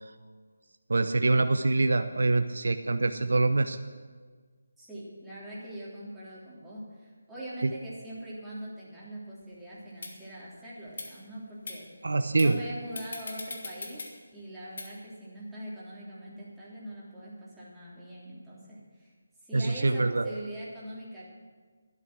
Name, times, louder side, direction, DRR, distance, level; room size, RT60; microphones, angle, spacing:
voice 1, 0.9-3.8 7.6-7.7 12.0-12.6 19.5-20.3, right 3 dB, 65° right, 9 dB, 0.7 m, -25 dB
voice 2, 4.8-11.8 12.3-14.0 14.3-19.1 19.4-21.2, right 1 dB, 5° right, -10 dB, 3.4 m, -42 dB
sound 1, 9.4-9.5 10.0-10.1 10.9-11.1 11.7-11.8 12.4-12.5 13.0-14.1 14.8-14.9, left 3 dB, 60° left, 2.3 m, -39 dB
12.5 x 12.0 x 6.2 m, 1.5 s
figure-of-eight pair, 160°, 0 cm